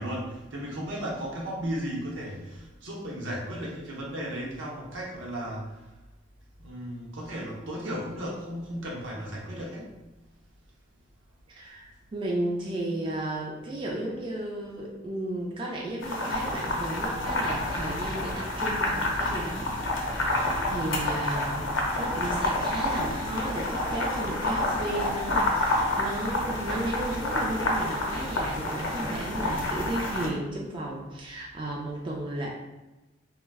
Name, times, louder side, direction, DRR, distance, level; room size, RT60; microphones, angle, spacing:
voice 1, 0.0-5.7 6.6-9.9, equal, 75° right, -3 dB, 0.7 m, -35 dB
voice 2, 11.5-19.7 20.1-21.7 22.0-32.5, right 1 dB, 25° right, -2 dB, 0.3 m, -34 dB
sound 1, 16.0-30.3, left 1 dB, 80° left, 0.6 m, -29 dB
2.3 x 2.1 x 3.4 m, 1.0 s
head